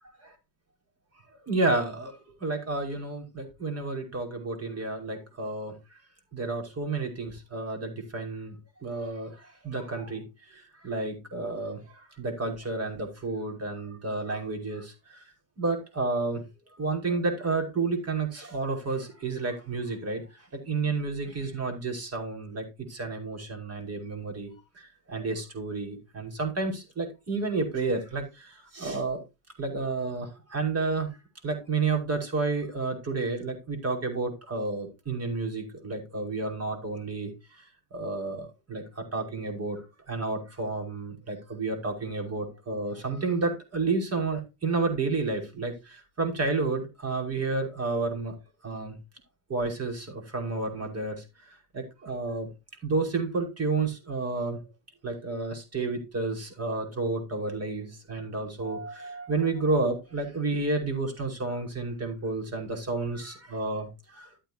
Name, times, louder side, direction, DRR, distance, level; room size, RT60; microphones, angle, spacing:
voice 1, 1.5-5.8 6.3-15.2 15.6-16.4 16.8-29.2 29.6-31.1 31.4-39.8 40.1-48.4 48.6-48.9 49.5-52.5 52.8-54.6 55.0-64.3, right 3 dB, 30° right, 5.7 m, -31 dB
13.0 x 8.9 x 2.9 m
hypercardioid pair, 85°, 50 cm